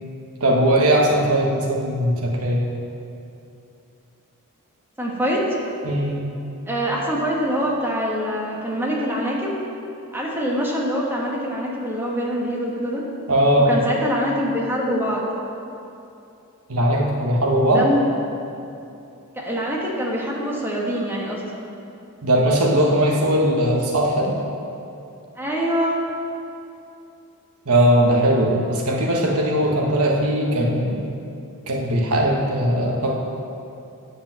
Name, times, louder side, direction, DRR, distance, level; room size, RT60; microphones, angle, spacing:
voice 1, 0.4-2.6 5.8-6.2 13.3-13.7 16.7-17.9 22.2-24.4 27.6-31.1 31.7-33.1, right 1 dB, 75° right, -1 dB, 1.5 m, -19 dB
voice 2, 5.0-5.4 6.7-9.5 10.1-13.0 13.7-15.2 17.7-18.0 19.3-21.4 25.4-26.0, equal, 10° right, -4 dB, 1.5 m, -24 dB
9.7 x 5.2 x 7.5 m, 2.7 s
head